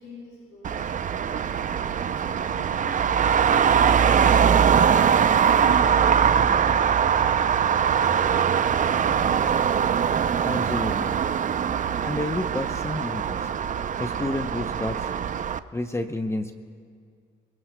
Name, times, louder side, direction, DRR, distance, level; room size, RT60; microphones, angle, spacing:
voice 1, 0.0-1.7 2.1-4.0 4.5-8.5, left 2 dB, 85° left, -6 dB, 5.5 m, -46 dB
Traffic noise roadway noise, 0.6-15.6, right 7 dB, 40° right, 0.5 m, -22 dB
sound 1, 3.1-11.2, right 5 dB, 90° right, 4.5 m, -41 dB
voice 2, 10.4-11.2 12.0-13.5 14.0-15.2 15.7-16.6, left 2 dB, 15° left, 7 dB, 0.6 m, -30 dB
28.0 x 21.5 x 2.2 m, 2.2 s
cardioid pair, 90°, 20 cm